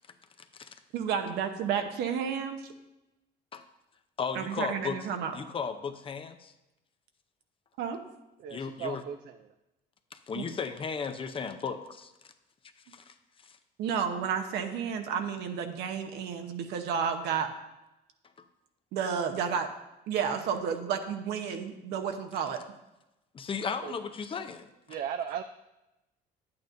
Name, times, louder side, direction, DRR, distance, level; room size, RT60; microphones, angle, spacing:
voice 1, 0.4-0.8 3.5-3.6 4.2-5.0 5.3-6.5 8.5-9.0 10.1-12.1 12.9-13.1 13.4-13.6 23.3-25.0, left 6 dB, 30° left, 8 dB, 0.6 m, -35 dB
voice 2, 0.9-2.7 4.3-5.3 7.8-8.0 10.3-10.5 13.8-17.5 18.9-19.7 20.1-22.6, right 7 dB, 85° right, 6 dB, 0.9 m, -31 dB
voice 3, 8.4-9.4 23.8-23.9 24.9-25.4, right 9 dB, 60° right, 7 dB, 0.4 m, -36 dB
10.5 x 8.7 x 2.6 m, 0.95 s
cardioid pair, 110°, 17 cm